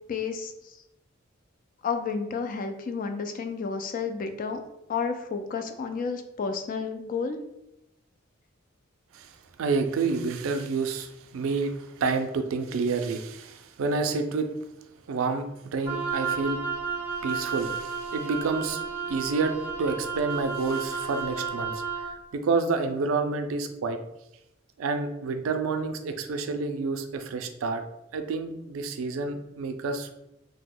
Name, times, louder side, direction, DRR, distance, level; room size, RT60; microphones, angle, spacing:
voice 1, 0.1-0.7 1.8-4.6 4.9-7.4, left 5 dB, 45° left, 7 dB, 0.3 m, -31 dB
voice 2, 9.6-14.5 15.1-16.6 17.2-18.8 19.1-22.1 22.3-24.0 24.8-27.8 28.1-30.1, right 4 dB, 90° right, 7 dB, 0.4 m, -29 dB
Wind instrument woodwind instrument, 15.9-22.1, right 5 dB, 10° right, 0.6 m, -32 dB
2.8 x 2.0 x 3.7 m, 0.89 s
head